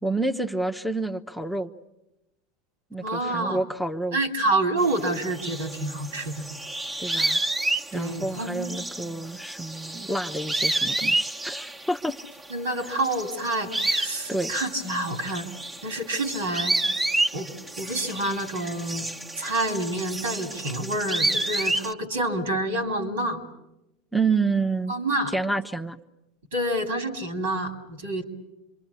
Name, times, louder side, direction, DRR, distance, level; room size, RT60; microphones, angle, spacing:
voice 1, 0.0-1.7 2.9-4.2 7.0-7.4 7.9-12.1 14.3-14.5 24.1-24.9 25.3-26.0, right 3 dB, ahead, 4 dB, 0.9 m, -28 dB
voice 2, 3.0-3.6 4.1-6.5 7.9-8.7 9.0-9.3 12.5-15.5 15.8-16.8 17.3-17.5 17.8-19.1 19.4-23.4 24.9-25.3 26.5-28.2, right 1 dB, 80° right, 7 dB, 3.1 m, -28 dB
sound 1, 4.8-12.5 12.8-21.9, right 2 dB, 25° right, 1.2 m, -30 dB
26.5 x 23.5 x 8.4 m, 0.95 s
hypercardioid pair, 90°, 0 cm